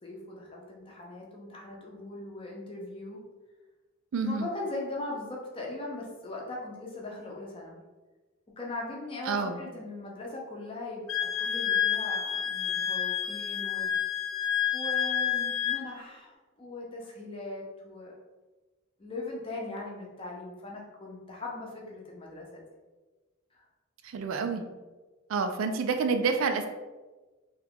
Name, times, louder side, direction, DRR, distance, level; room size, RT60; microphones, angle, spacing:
voice 1, 0.0-3.2 4.2-7.8 8.6-13.9 14.7-18.1 19.0-22.6 23.5-23.6, left 2 dB, 25° left, -2 dB, 0.6 m, -40 dB
voice 2, 4.1-4.5 9.3-9.6 24.0-24.6 25.3-26.7, right 4 dB, 80° right, 6 dB, 0.4 m, -28 dB
Wind instrument woodwind instrument, 11.1-15.8, left 9 dB, 70° left, 0.4 m, -29 dB
2.9 x 2.3 x 3.4 m, 1.2 s
head